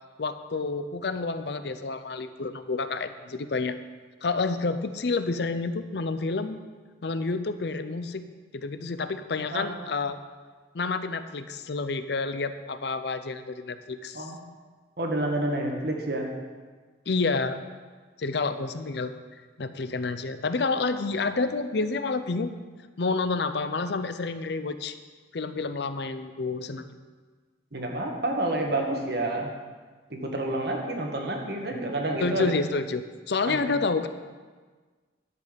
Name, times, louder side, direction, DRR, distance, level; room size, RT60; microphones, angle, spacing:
voice 1, 0.2-3.8 4.2-6.6 7.0-8.2 8.5-10.2 10.7-14.3 17.1-17.6 18.2-19.1 19.6-22.5 23.0-24.9 25.3-27.0 31.7-31.8 32.2-34.1, left 3 dB, 60° left, 11 dB, 0.6 m, -29 dB
voice 2, 15.0-16.3 27.7-29.5 30.1-32.5 33.5-33.8, right 1 dB, 55° right, 1 dB, 1.6 m, -29 dB
11.0 x 8.0 x 5.1 m, 1.4 s
head